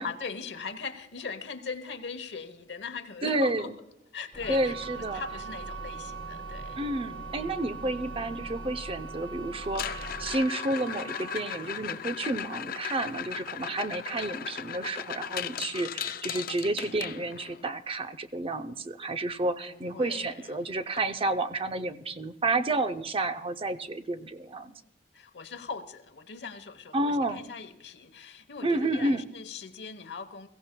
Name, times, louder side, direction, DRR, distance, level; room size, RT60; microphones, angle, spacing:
voice 1, 0.0-3.7 4.1-4.8 5.1-6.8 7.8-8.2 19.7-20.7 25.1-30.5, left 5 dB, 75° left, 10 dB, 1.0 m, -40 dB
voice 2, 3.2-3.8 4.5-5.2 6.8-24.8 26.9-27.5 28.6-29.2, right 2 dB, 30° right, 10 dB, 0.6 m, -30 dB
sound 1, 4.3-10.4, equal, 10° left, 1.2 m, -44 dB
sound 2, 4.3-15.2 15.5-16.0 16.4-16.5, right 7 dB, 80° right, 2.1 m, -43 dB
sound 3, 9.6-17.6 19.9-20.0 20.2-20.5 21.0-21.1 21.6-21.7 23.6-23.7, left 9 dB, 55° left, 0.5 m, -37 dB
22.5 x 15.5 x 2.2 m, 0.88 s
head